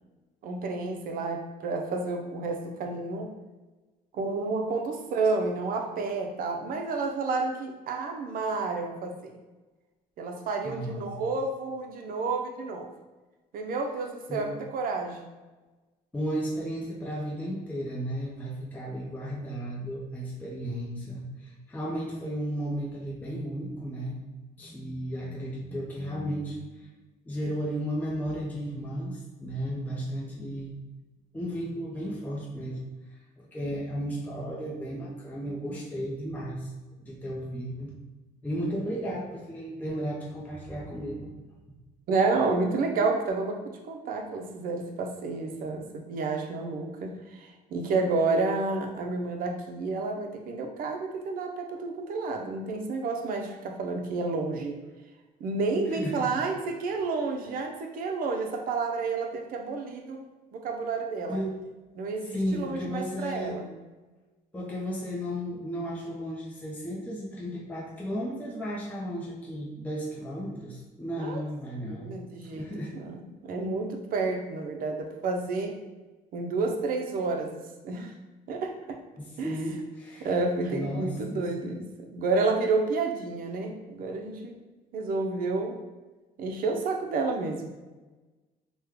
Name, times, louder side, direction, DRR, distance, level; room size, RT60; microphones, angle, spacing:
voice 1, 0.4-3.3 4.1-9.3 10.2-12.9 13.5-15.3 42.1-54.8 55.4-60.2 60.5-61.4 61.9-63.7 71.2-71.4 71.8-72.7 72.9-75.7 76.3-78.1 78.5-79.0 79.4-79.6 80.2-84.6 84.9-85.8 86.4-87.8, right 3 dB, 55° right, 3 dB, 0.6 m, -30 dB
voice 2, 10.6-11.1 14.3-14.4 16.1-24.2 24.6-26.9 27.3-30.7 31.3-32.8 33.4-36.7 37.0-37.9 38.4-41.3 55.9-56.3 61.3-61.6 62.3-63.6 64.5-72.1 72.4-72.9 79.2-80.3 80.7-81.4, equal, 10° left, -5 dB, 0.6 m, -34 dB
3.1 x 2.2 x 3.5 m, 1.2 s
cardioid pair, 110°, 17 cm